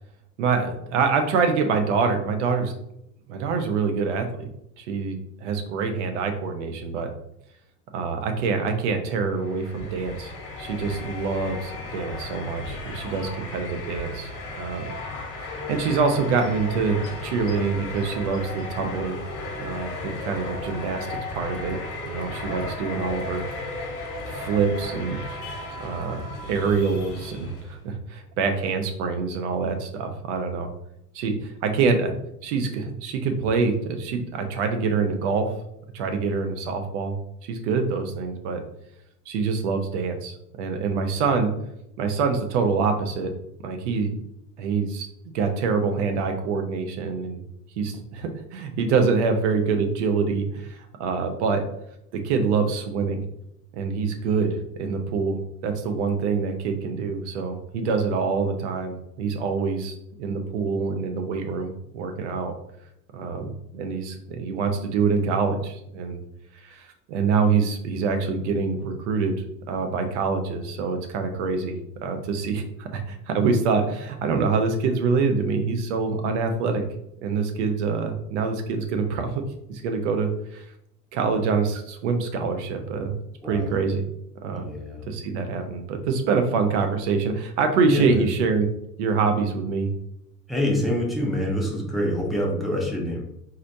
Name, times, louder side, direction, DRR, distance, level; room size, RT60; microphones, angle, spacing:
voice 1, 0.4-2.7 3.3-4.5 4.8-7.1 7.9-10.3 10.6-14.3 14.6-14.9 15.4-19.2 19.6-21.1 21.3-21.8 22.0-23.5 24.3-25.2 25.7-30.7 31.1-32.1 32.4-35.5 35.9-37.2 37.4-38.6 39.3-41.5 42.0-43.3 43.6-44.1 44.6-47.4 47.8-51.6 52.2-53.2 53.7-62.5 63.1-66.2 66.6-69.3 69.7-76.8 77.2-79.4 79.7-80.6 81.1-83.2 83.5-84.0 84.4-84.7 85.1-88.7 89.0-89.9, right 5 dB, 45° right, 6 dB, 0.7 m, -25 dB
sound 1, 9.3-27.8, left 2 dB, 40° left, 1.2 m, -35 dB
voice 2, 83.4-83.7 84.5-85.1 87.9-88.3 90.5-93.2, left 1 dB, ahead, -3 dB, 0.6 m, -26 dB
4.0 x 3.1 x 2.7 m, 0.78 s
figure-of-eight pair, 80°, 48 cm